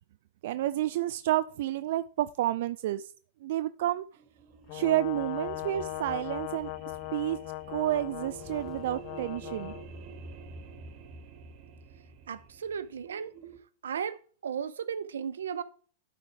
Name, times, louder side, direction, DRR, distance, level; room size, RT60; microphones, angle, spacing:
voice 1, 0.4-3.1 3.4-4.1 4.7-6.7 7.1-7.4 7.7-9.7, right 14 dB, 65° right, 0.4 m, -30 dB
sound 1, 4.1-13.6, right 4 dB, 45° right, 1.4 m, -48 dB
Brass instrument, 4.7-9.9, left 19 dB, 55° left, 0.3 m, -39 dB
sound 2, 7.5-10.2, left 1 dB, 10° right, 1.2 m, -56 dB
voice 2, 12.3-13.3 13.8-14.2 14.4-15.6, right 7 dB, 90° right, 0.7 m, -35 dB
11.5 x 4.6 x 4.8 m
hypercardioid pair, 120°, 0 cm